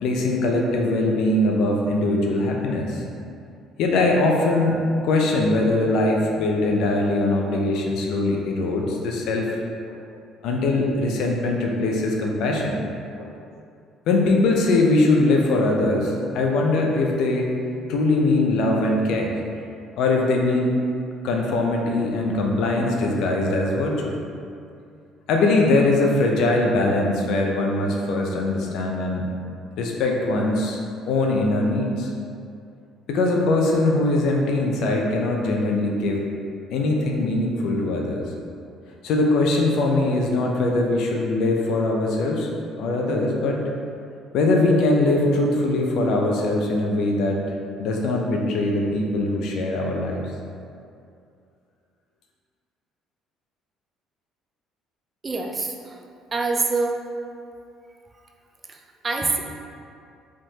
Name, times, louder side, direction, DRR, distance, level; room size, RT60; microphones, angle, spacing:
voice 1, 0.0-3.0 3.8-9.6 9.9-10.0 10.4-12.8 13.2-13.3 14.1-17.5 17.9-19.3 20.0-20.8 21.2-24.2 25.3-29.3 29.8-30.8 31.1-32.1 33.1-36.3 36.7-38.3 39.0-42.5 42.8-43.6 44.3-47.4 47.8-50.3, left 2 dB, 70° left, 0 dB, 0.7 m, -21 dB
voice 2, 55.2-56.0 56.3-57.0 58.7-59.4, right 3 dB, 30° right, 2 dB, 0.5 m, -25 dB
5.0 x 3.7 x 2.9 m, 2.5 s
supercardioid pair, 80°, 0 cm